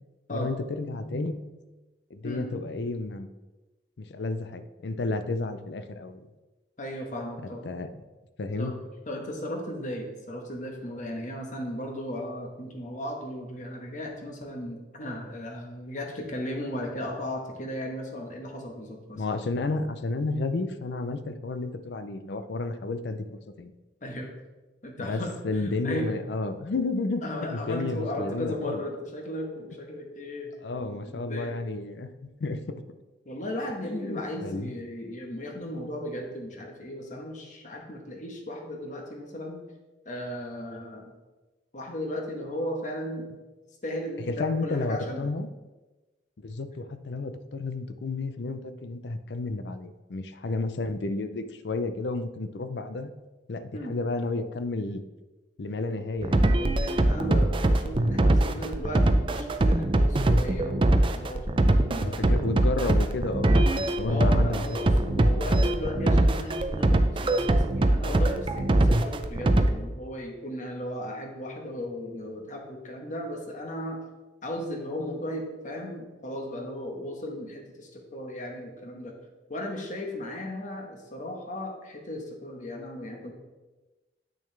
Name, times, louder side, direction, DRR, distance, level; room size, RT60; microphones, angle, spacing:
voice 1, 0.3-1.3 2.1-3.3 4.0-6.2 7.6-7.9 8.4-8.7 19.2-23.7 25.0-27.2 27.5-28.8 30.6-32.6 33.8-34.7 44.2-45.5 46.4-53.1 53.5-55.0 55.6-56.6 58.5-58.7 62.0-64.6 64.9-65.4, left 3 dB, 70° left, 11 dB, 0.5 m, -32 dB
voice 2, 1.0-1.4 2.2-2.5 6.8-7.6 8.6-8.7 9.1-19.2 24.0-24.3 24.8-26.2 27.2-31.5 33.2-39.6 40.0-41.1 41.7-43.3 43.8-45.3 53.7-53.9 55.9-56.0 56.5-62.5 64.0-74.0 74.4-79.1 79.5-83.3, left 1 dB, 45° left, 2 dB, 1.2 m, -36 dB
sound 1, 56.2-69.7, right 1 dB, 30° right, 0.4 m, -22 dB
8.6 x 6.3 x 3.3 m, 1.2 s
head